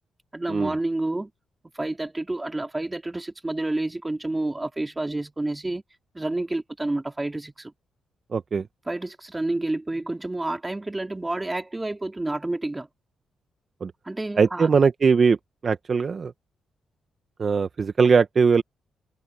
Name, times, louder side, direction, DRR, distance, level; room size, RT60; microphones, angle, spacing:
voice 1, 0.3-1.3 1.7-5.8 6.1-7.7 8.9-12.9 14.0-14.7, right 2 dB, 15° right, 3.2 m, -29 dB
voice 2, 8.3-8.7 13.8-13.9 14.4-15.4 15.6-16.3 17.4-18.6, right 5 dB, 45° right, 1.2 m, -20 dB
cardioid pair, 75°, 0 cm